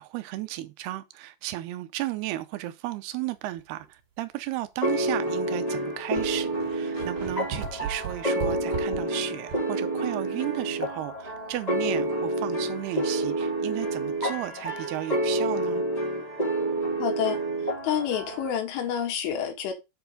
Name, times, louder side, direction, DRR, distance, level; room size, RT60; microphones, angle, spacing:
voice 1, 0.0-15.9, right 15 dB, 85° right, 2.2 m, -34 dB
sound 1, 3.6-3.9 4.5-4.6 5.5-5.6 5.8-9.8 10.1-10.2 13.8-13.9, right 6 dB, 50° right, 3.2 m, -37 dB
sound 2, 4.8-18.5, right 1 dB, 15° left, 1.3 m, -29 dB
voice 2, 17.0-17.4 17.8-19.7, left 8 dB, 85° left, 4.2 m, -28 dB
7.9 x 4.7 x 5.1 m
omnidirectional pair, 5.4 m